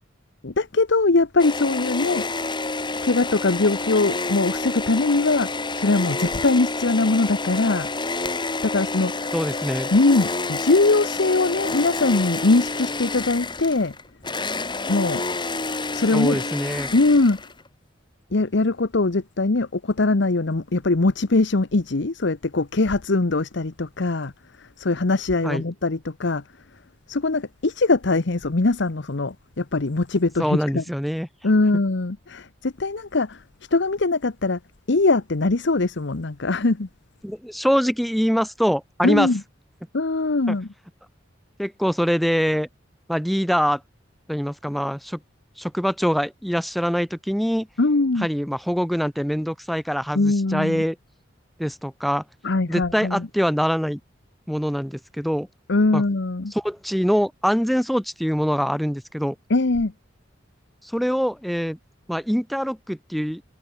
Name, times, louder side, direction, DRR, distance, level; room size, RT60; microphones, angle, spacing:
voice 1, 0.4-2.3 3.0-5.5 5.7-7.9 8.6-9.1 9.9-13.9 14.9-15.2 15.9-16.4 16.9-17.4 18.3-24.3 24.8-26.4 27.1-30.8 31.4-33.4 33.7-34.6 34.9-36.9 39.0-39.4 39.9-40.7 47.8-48.3 50.1-50.8 52.4-53.3 55.7-56.5 59.5-59.9, left 3 dB, 65° left, 1.0 m, -21 dB
sound 1, 1.4-17.7, left 3 dB, 25° left, 2.9 m, -29 dB
voice 2, 9.3-9.9 16.1-16.9 25.4-25.6 30.4-31.3 37.2-39.3 40.5-40.6 41.6-42.7 43.1-43.8 44.3-45.2 45.6-47.7 48.2-51.0 51.6-52.2 52.7-54.0 54.5-55.5 55.9-56.0 56.5-59.3 60.9-61.8 62.1-63.4, equal, ahead, 0.9 m, -24 dB
head